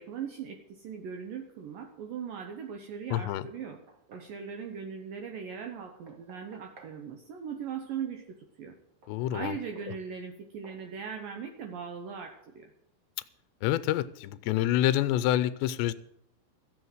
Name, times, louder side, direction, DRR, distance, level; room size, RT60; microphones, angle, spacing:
voice 1, 0.0-3.8 4.1-8.8 9.3-12.7, right 7 dB, 70° right, 2.2 m, -39 dB
voice 2, 3.1-3.5 9.1-9.6 13.6-15.9, left 13 dB, 85° left, 2.8 m, -27 dB
Knock, 3.2-4.4 5.8-7.0 9.0-9.2 9.8-10.0 10.6-10.9, right 2 dB, 40° right, 2.0 m, -56 dB
14.5 x 7.9 x 7.9 m
omnidirectional pair, 5.1 m